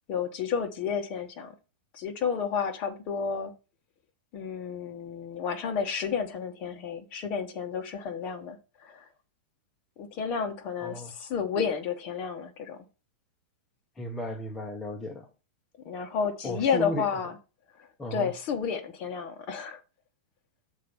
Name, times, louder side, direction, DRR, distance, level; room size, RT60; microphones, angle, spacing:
voice 1, 0.1-1.5 1.9-3.5 4.3-9.1 10.0-12.8 15.8-17.4 17.8-19.8, left 6 dB, 25° left, 6 dB, 0.9 m, -31 dB
voice 2, 10.8-11.1 14.0-15.3 16.4-17.1 18.0-18.3, left 1 dB, 5° left, 2 dB, 0.5 m, -35 dB
6.5 x 4.4 x 5.3 m, 0.32 s
supercardioid pair, 180°, 6 cm